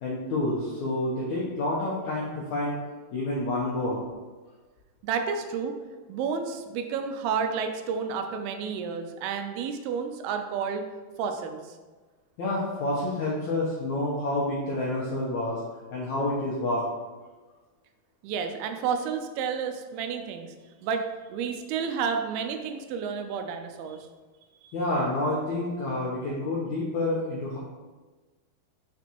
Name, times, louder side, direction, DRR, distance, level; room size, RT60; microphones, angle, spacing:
voice 1, 0.0-2.8 3.1-4.0 12.4-15.6 15.9-16.8 24.7-27.6, left 2 dB, 80° left, -5 dB, 1.7 m, -28 dB
voice 2, 5.0-5.7 6.1-10.9 11.2-11.8 18.2-20.5 20.8-24.0, right 6 dB, 85° right, 6 dB, 2.5 m, -31 dB
6.0 x 6.0 x 2.9 m, 1.3 s
omnidirectional pair, 4.6 m